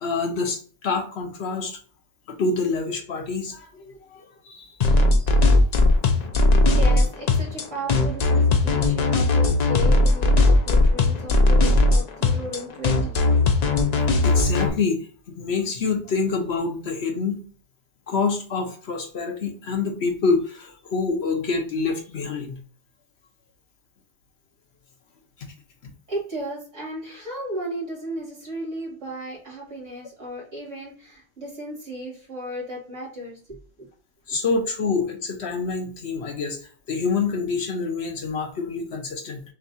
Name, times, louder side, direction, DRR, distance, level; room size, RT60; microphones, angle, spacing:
voice 1, 0.0-1.8 2.3-4.7 14.2-15.0 15.3-17.4 18.1-22.6 34.3-36.6 36.9-39.4, left 4 dB, 65° left, 3 dB, 1.1 m, -26 dB
sound 1, 4.8-14.7, left 2 dB, 50° left, 0.5 m, -18 dB
voice 2, 6.7-13.3 26.1-33.6 34.3-34.4, right 1 dB, 85° right, -5 dB, 2.5 m, -35 dB
6.2 x 2.3 x 2.7 m, 0.42 s
omnidirectional pair, 1.2 m